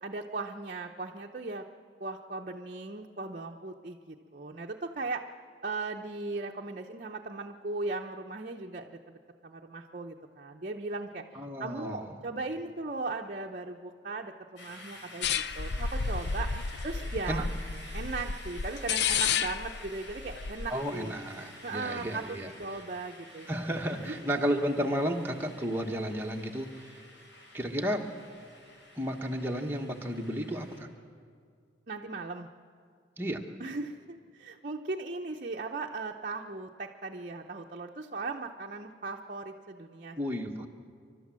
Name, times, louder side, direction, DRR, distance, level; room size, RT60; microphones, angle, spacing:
voice 1, 0.0-1.7 2.0-5.3 5.6-11.2 11.6-15.3 15.5-16.6 16.8-17.5 17.9-21.1 21.6-23.5 24.0-24.2 31.9-32.5 33.6-40.2, right 3 dB, 45° right, 1 dB, 0.8 m, -38 dB
voice 2, 11.3-12.2 17.3-17.5 20.7-22.5 23.5-26.9 27.5-28.1 28.9-30.9 33.2-33.4 40.2-40.7, equal, 10° right, 1 dB, 1.3 m, -32 dB
sound 1, 14.6-30.8, left 1 dB, 75° left, 4.1 m, -50 dB
sound 2, 15.2-20.7, left 6 dB, 60° left, 0.5 m, -31 dB
29.0 x 12.5 x 7.5 m, 2.2 s
head